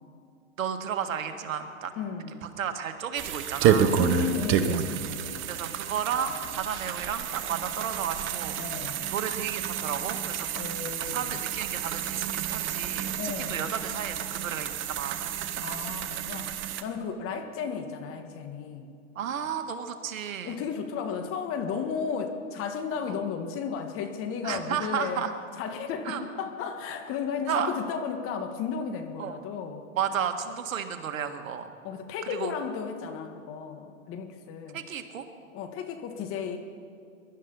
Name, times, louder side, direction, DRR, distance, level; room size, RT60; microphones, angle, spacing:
voice 1, 0.6-1.9 2.6-3.9 5.5-10.5 11.0-15.3 19.1-20.6 23.1-23.2 24.4-25.3 26.0-26.5 27.5-27.7 29.2-29.4 30.0-31.7 32.3-32.5 34.7-35.3, right 8 dB, 75° right, 7 dB, 1.7 m, -33 dB
voice 2, 2.0-2.5 4.0-5.7 8.6-9.1 10.5-11.4 13.2-13.7 15.6-16.5 16.8-18.9 20.4-25.2 25.6-29.9 31.8-34.9 35.5-36.6, left 6 dB, 35° left, 6 dB, 1.7 m, -34 dB
sound 1, 3.2-16.8, right 9 dB, 30° right, 1.0 m, -30 dB
22.0 x 12.0 x 5.5 m, 2.4 s
hypercardioid pair, 120°, 41 cm